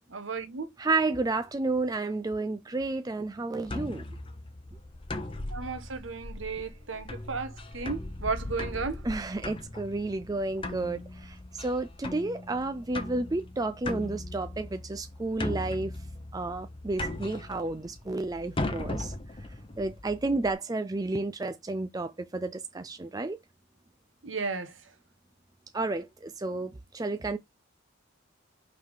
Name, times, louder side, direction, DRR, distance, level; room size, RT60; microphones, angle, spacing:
voice 1, 0.1-0.7 5.5-9.0 24.2-24.7, right 4 dB, 65° right, 1.2 m, -34 dB
voice 2, 0.8-4.0 9.0-15.9 16.3-19.2 19.8-23.4 25.7-27.4, right 2 dB, 20° right, 0.4 m, -31 dB
sound 1, 3.7-20.5, left 2 dB, 25° left, 0.9 m, -38 dB
5.7 x 3.7 x 4.8 m
head